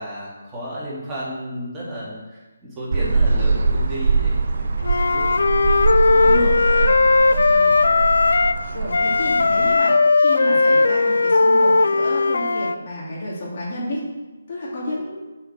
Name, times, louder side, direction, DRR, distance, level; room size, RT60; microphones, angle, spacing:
voice 1, 0.0-2.4 2.8-5.2 5.8-7.8, equal, 10° right, -10 dB, 2.9 m, -33 dB
sound 1, 2.9-9.7, right 3 dB, 55° right, 0.8 m, -22 dB
Wind instrument woodwind instrument, 4.8-8.6 8.9-12.8, left 3 dB, 70° left, 0.4 m, -17 dB
voice 2, 6.2-6.7 8.7-9.9 10.2-14.0 14.5-15.2, equal, 45° left, -5 dB, 3.1 m, -30 dB
7.9 x 5.6 x 6.2 m, 1.2 s
figure-of-eight pair, 155°, 0 cm